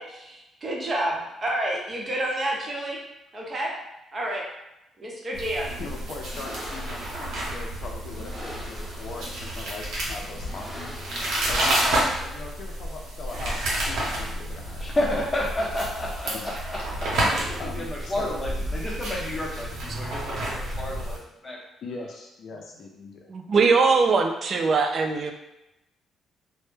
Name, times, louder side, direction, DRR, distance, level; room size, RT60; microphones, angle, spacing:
voice 1, 0.0-3.0 3.3-3.7 4.1-4.4 5.0-5.7, right 1 dB, 35° right, -3 dB, 0.7 m, -29 dB
sound 1, 5.3-21.2, right 1 dB, 80° right, 0.7 m, -30 dB
sound 2, 5.6-12.4, equal, 5° right, 0.9 m, -43 dB
voice 2, 5.8-14.9 16.3-16.5 17.6-18.4 21.8-23.3, left 3 dB, 65° left, 0 dB, 0.4 m, -40 dB
voice 3, 14.8-21.2 21.4-21.6, left 1 dB, 20° left, -3 dB, 0.7 m, -31 dB
voice 4, 23.3-25.3, right 4 dB, 50° right, 5 dB, 0.3 m, -21 dB
2.1 x 2.0 x 3.1 m, 0.90 s
cardioid pair, 90°, 0 cm